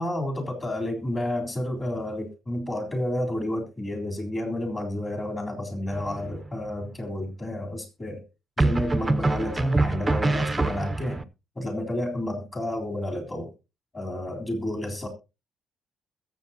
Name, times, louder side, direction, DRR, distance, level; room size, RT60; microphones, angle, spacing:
voice 1, 0.0-8.2 8.6-11.3 11.6-13.5 13.9-15.1, left 1 dB, 25° left, 3.7 m, -30 dB
sound 1, 5.9-6.5 8.6-11.2, right 3 dB, 15° right, 0.5 m, -25 dB
21.5 x 7.5 x 2.9 m
cardioid pair, 135°, 0 cm